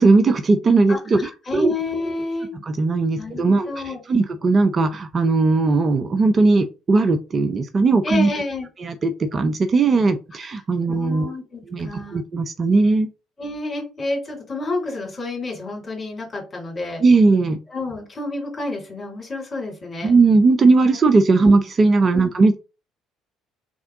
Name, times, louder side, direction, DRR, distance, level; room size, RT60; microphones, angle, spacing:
voice 1, 0.0-1.7 2.7-3.7 4.1-8.3 8.8-11.3 11.7-13.1 17.0-17.6 20.0-22.6, right 3 dB, 35° right, 9 dB, 0.5 m, -18 dB
voice 2, 0.9-2.5 3.1-4.2 8.0-8.7 10.4-10.6 10.9-12.2 13.4-17.0 17.7-20.1 21.4-21.5 22.1-22.2, left 2 dB, 30° left, 0 dB, 2.4 m, -29 dB
3.6 x 3.4 x 3.6 m, 0.31 s
figure-of-eight pair, 50°, 0 cm